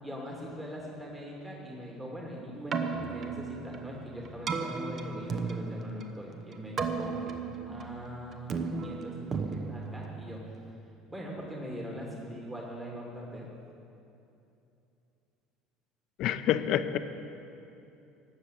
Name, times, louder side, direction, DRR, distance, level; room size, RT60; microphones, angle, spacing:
voice 1, 0.0-7.4 7.7-10.4 11.1-13.5, equal, 20° right, -2 dB, 2.4 m, -41 dB
Keyboard (musical), 2.5-10.7, right 4 dB, 40° right, 0.9 m, -35 dB
voice 2, 16.2-17.0, left 11 dB, 55° left, 11 dB, 0.6 m, -27 dB
12.5 x 7.3 x 8.1 m, 2.8 s
figure-of-eight pair, 65°, 0 cm